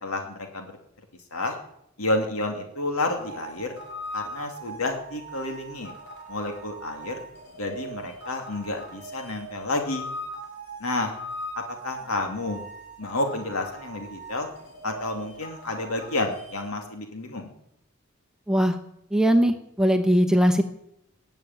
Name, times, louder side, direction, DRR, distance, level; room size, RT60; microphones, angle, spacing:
voice 1, 0.0-0.7 1.3-1.6 2.0-3.8 4.1-5.9 6.3-7.2 7.6-10.1 10.8-11.1 11.8-12.6 13.0-14.5 14.8-17.5, left 2 dB, 80° left, 4 dB, 2.6 m, -30 dB
sound 1, 3.2-16.7, right 1 dB, 50° left, 4.5 m, -40 dB
voice 2, 19.1-20.6, equal, 5° right, 5 dB, 1.0 m, -20 dB
20.0 x 7.1 x 9.1 m, 0.75 s
head